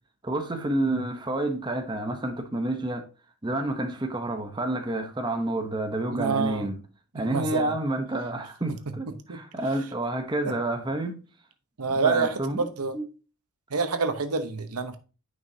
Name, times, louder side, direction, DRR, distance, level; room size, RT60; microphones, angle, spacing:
voice 1, 0.2-3.1 3.4-6.8 7.1-11.2 11.9-12.7 12.9-13.0, right 1 dB, 20° right, 0.8 m, -29 dB
voice 2, 6.1-6.7 7.1-7.7 9.3-9.4 10.5-10.6 11.8-13.0 13.7-15.0, right 4 dB, 85° right, 0.9 m, -27 dB
9.5 x 5.5 x 2.7 m
head